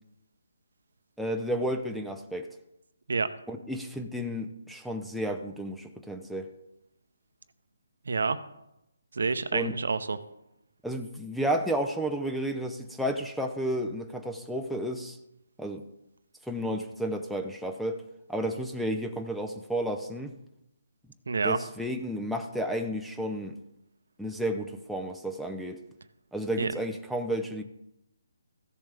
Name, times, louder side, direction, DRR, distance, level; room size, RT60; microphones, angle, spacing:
voice 1, 1.2-2.5 3.5-6.5 9.5-9.7 10.8-15.2 15.6-15.8 16.5-18.0 18.3-20.3 21.4-23.6 24.2-25.8 26.3-27.6, equal, ahead, 1 dB, 0.5 m, -32 dB
voice 2, 8.1-8.4 9.1-10.2 21.3-21.6 26.6-26.7, right 4 dB, 70° right, 12 dB, 0.7 m, -27 dB
15.0 x 7.0 x 3.4 m, 0.87 s
hypercardioid pair, 160°, 0 cm